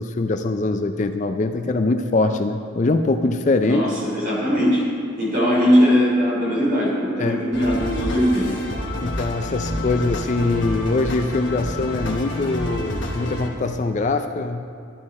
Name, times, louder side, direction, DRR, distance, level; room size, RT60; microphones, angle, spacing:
voice 1, 0.0-3.8 7.2-7.4 9.0-14.6, left 3 dB, 35° left, 7 dB, 0.4 m, -23 dB
voice 2, 3.6-4.8 5.2-8.5, equal, 45° right, -4 dB, 3.3 m, -19 dB
sound 1, 7.5-13.5, left 1 dB, 65° left, 1.1 m, -28 dB
12.0 x 9.8 x 4.3 m, 2.2 s
head